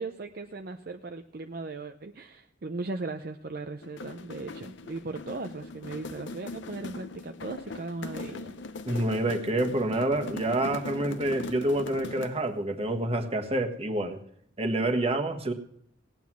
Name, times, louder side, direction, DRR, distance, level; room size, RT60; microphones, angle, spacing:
voice 1, 0.0-8.6, right 3 dB, 50° right, 5 dB, 0.6 m, -38 dB
sound 1, 3.8-12.5, left 3 dB, 70° left, 0.7 m, -40 dB
voice 2, 8.9-14.2 14.6-15.5, right 1 dB, 30° right, 5 dB, 1.4 m, -27 dB
18.0 x 9.4 x 6.1 m, 0.69 s
head